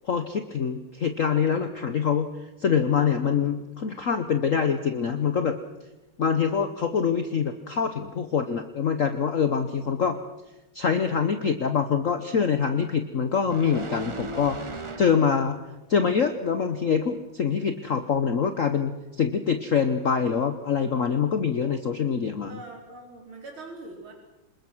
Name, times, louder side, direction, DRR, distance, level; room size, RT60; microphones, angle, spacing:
voice 1, 0.0-2.3 2.6-5.5 6.2-10.2 10.7-14.6 15.0-15.6 15.9-22.5, left 6 dB, 50° left, 8 dB, 1.2 m, -25 dB
sound 1, 13.5-15.6 16.0-16.2, right 3 dB, 30° right, 0.5 m, -37 dB
voice 2, 22.5-24.1, right 2 dB, 85° right, 0 dB, 5.2 m, -42 dB
26.5 x 21.0 x 6.2 m, 1.0 s
omnidirectional pair, 2.2 m